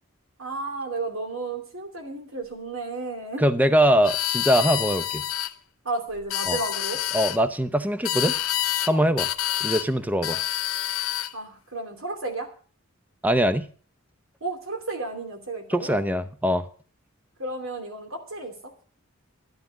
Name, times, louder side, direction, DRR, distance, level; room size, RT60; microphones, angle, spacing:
voice 1, 0.4-3.4 5.8-7.0 8.9-9.1 10.3-10.4 11.3-12.5 14.4-16.0 17.4-18.7, right 3 dB, 75° right, 2.9 m, -33 dB
voice 2, 3.4-5.3 6.5-6.6 7.1-8.4 8.9-9.3 9.6-10.4 13.2-13.7 15.7-16.7, equal, 10° right, 0.6 m, -22 dB
sound 1, 4.0-5.5 6.2-7.4 8.0-8.9 9.2-9.9 10.2-11.3, left 14 dB, 90° left, 0.6 m, -27 dB
12.0 x 9.7 x 6.2 m
head